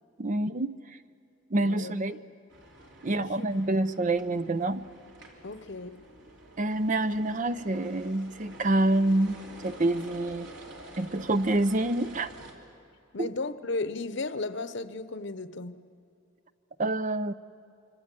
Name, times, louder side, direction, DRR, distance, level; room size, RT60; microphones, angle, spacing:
voice 1, 0.2-0.7 1.5-2.2 3.0-4.9 6.6-10.5 11.0-12.3 13.2-13.3 16.8-17.3, right 2 dB, 40° right, 0.6 m, -27 dB
voice 2, 1.6-2.2 3.0-3.5 5.4-6.0 13.1-15.8, left 3 dB, 60° left, 1.0 m, -35 dB
sound 1, 2.5-12.5, right 1 dB, 60° right, 3.7 m, -48 dB
26.0 x 25.0 x 8.4 m
head